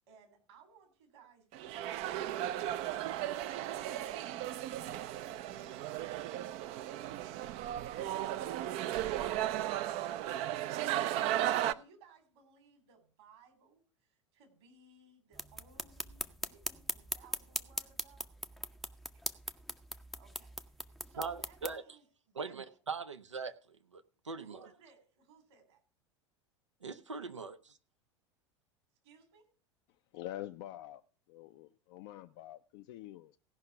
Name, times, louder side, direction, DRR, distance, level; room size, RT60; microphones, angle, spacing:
voice 1, 0.1-4.3 4.7-18.3 20.1-22.8 24.4-25.8 29.0-29.5, right 5 dB, 60° right, 3.3 m, -62 dB
sound 1, 1.5-11.7, right 12 dB, 45° right, 0.6 m, -35 dB
sound 2, 15.3-21.8, equal, ahead, 0.6 m, -41 dB
voice 2, 21.2-21.8 22.3-24.6 26.8-27.6, right 4 dB, 80° right, 0.8 m, -41 dB
voice 3, 30.1-31.0 31.3-33.4, left 14 dB, 50° left, 0.5 m, -46 dB
16.5 x 5.7 x 5.8 m
figure-of-eight pair, 80°, 15 cm